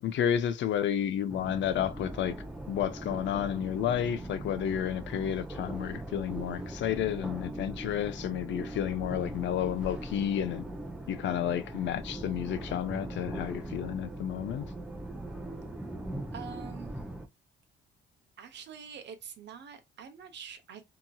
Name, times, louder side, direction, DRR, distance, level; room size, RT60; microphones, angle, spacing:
voice 1, 0.0-2.3 2.7-10.7 11.1-14.7, left 9 dB, 70° left, 0.5 m, -31 dB
sound 1, 1.3-17.3, right 1 dB, 5° right, 0.6 m, -40 dB
voice 2, 16.3-17.0 18.4-20.8, right 7 dB, 60° right, 0.8 m, -45 dB
2.9 x 2.6 x 2.2 m
cardioid pair, 90°, 20 cm